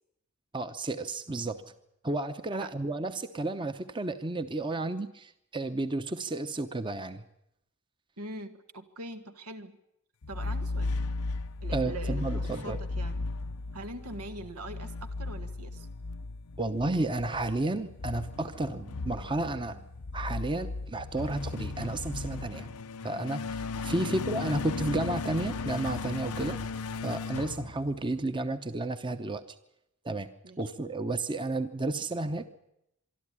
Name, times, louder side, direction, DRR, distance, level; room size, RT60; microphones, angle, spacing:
voice 1, 0.5-1.6 2.0-7.2 11.7-12.8 16.6-19.8 20.1-22.8 23.0-26.6 27.0-29.4 30.0-30.3 30.6-32.5, right 2 dB, 20° right, 10 dB, 0.8 m, -32 dB
voice 2, 8.2-9.8 10.3-11.0 11.6-13.2 13.7-15.9 24.0-24.3 30.4-30.6, right 2 dB, 90° right, 8 dB, 1.7 m, -43 dB
sound 1, 10.2-28.4, left 3 dB, 90° left, 0.8 m, -36 dB
24.5 x 12.5 x 9.8 m, 0.81 s
head